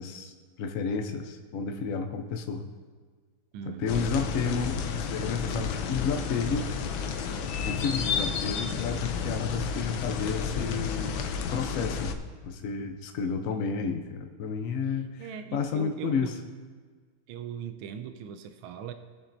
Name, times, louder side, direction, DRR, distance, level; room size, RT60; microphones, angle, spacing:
voice 1, 0.0-2.6 3.7-6.6 7.6-11.1 11.5-12.2 12.4-16.3, left 5 dB, 60° left, 5 dB, 0.8 m, -31 dB
voice 2, 3.5-4.1 13.2-13.6 14.9-16.3 17.3-18.9, right 8 dB, 90° right, 8 dB, 1.4 m, -40 dB
sound 1, 3.9-12.1, left 6 dB, 85° left, 1.5 m, -31 dB
18.5 x 7.1 x 2.6 m, 1.5 s
omnidirectional pair, 2.1 m